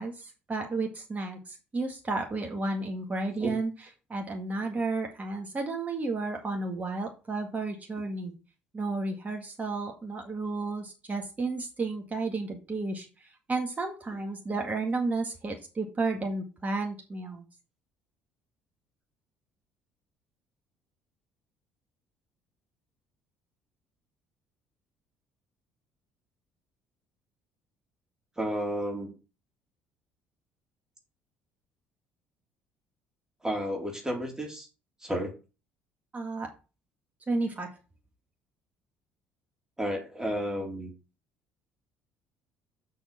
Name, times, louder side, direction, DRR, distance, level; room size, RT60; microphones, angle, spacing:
voice 1, 0.0-3.7 4.1-8.3 8.7-17.4 36.1-36.5 37.3-37.7, right 3 dB, 25° right, 2 dB, 1.9 m, -32 dB
voice 2, 28.4-29.1 33.4-34.7 35.0-35.3 39.8-40.9, equal, 10° right, 0 dB, 3.5 m, -32 dB
6.6 x 6.3 x 4.4 m, 0.31 s
figure-of-eight pair, 55°, 6 cm